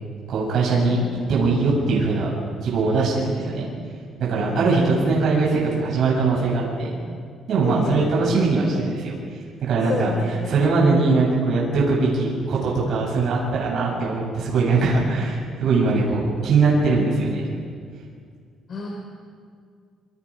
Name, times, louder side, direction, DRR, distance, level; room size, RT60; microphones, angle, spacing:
voice 1, 0.3-1.0 1.3-2.3 2.6-3.7 4.3-7.0 7.5-9.1 9.6-10.1 10.5-17.5, right 3 dB, 55° right, -5 dB, 7.8 m, -21 dB
voice 2, 4.3-4.9 7.6-8.1 9.7-10.8 18.7-18.9, left 3 dB, 35° left, 0 dB, 3.5 m, -30 dB
29.0 x 25.5 x 5.2 m, 2.1 s
cardioid pair, 160°, 0 cm